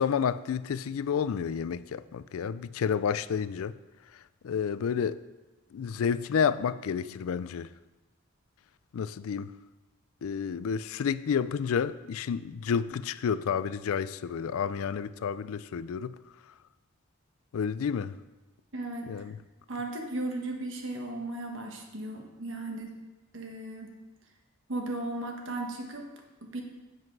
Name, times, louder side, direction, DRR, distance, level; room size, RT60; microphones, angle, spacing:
voice 1, 0.0-3.7 4.4-5.2 5.7-7.7 8.9-9.5 10.2-16.2 17.5-18.1 19.0-19.4, left 7 dB, 85° left, 16 dB, 0.4 m, -30 dB
voice 2, 18.7-19.1 19.7-23.0 23.3-23.9 24.7-26.1 26.4-26.6, right 2 dB, 65° right, 2 dB, 1.3 m, -36 dB
7.8 x 7.6 x 4.7 m, 1.1 s
head